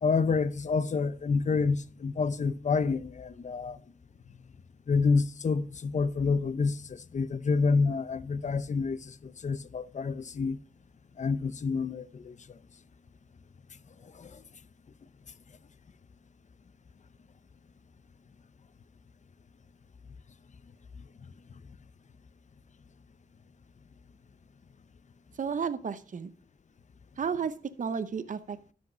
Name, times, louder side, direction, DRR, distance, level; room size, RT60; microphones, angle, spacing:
voice 1, 0.0-3.8 4.9-10.6 11.2-12.6 14.0-14.4, left 4 dB, 55° left, 0.7 m, -28 dB
voice 2, 25.4-26.3 27.2-28.7, right 6 dB, 60° right, 0.8 m, -33 dB
12.5 x 5.3 x 5.9 m
wide cardioid pair, 75°, 15 cm